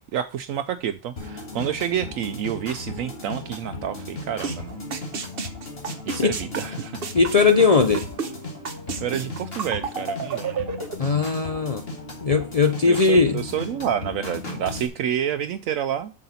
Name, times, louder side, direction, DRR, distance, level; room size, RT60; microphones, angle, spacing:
voice 1, 0.1-4.9 6.1-7.0 9.0-10.7 12.8-16.1, right 9 dB, 75° right, 0.9 m, -29 dB
sound 1, 1.2-14.9, left 2 dB, 45° left, 2.5 m, -36 dB
sound 2, 4.4-4.6 4.9-8.3 8.6-11.0, right 5 dB, 45° right, 1.1 m, -30 dB
voice 2, 7.1-8.1 11.0-11.8 12.2-13.4, left 4 dB, 75° left, 0.3 m, -19 dB
7.8 x 6.5 x 4.2 m
omnidirectional pair, 1.5 m